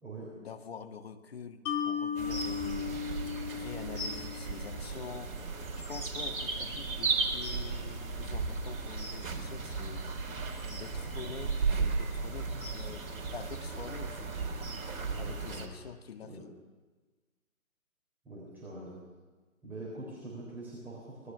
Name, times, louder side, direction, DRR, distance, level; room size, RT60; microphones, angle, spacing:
voice 1, 0.4-3.0 3.5-5.3 5.8-10.1 10.7-13.1 13.3-14.5 15.2-16.5, left 6 dB, 45° left, 6 dB, 1.9 m, -46 dB
Mallet percussion, 1.7-4.9, left 7 dB, 15° left, 1.7 m, -36 dB
sound 1, 2.1-15.7, right 4 dB, 40° right, 4.0 m, -35 dB
voice 2, 15.1-15.7 16.3-16.4 18.2-19.0 19.6-21.3, right 2 dB, 5° right, -7 dB, 3.8 m, -44 dB
24.5 x 19.5 x 6.5 m, 1.3 s
figure-of-eight pair, 155°, 42 cm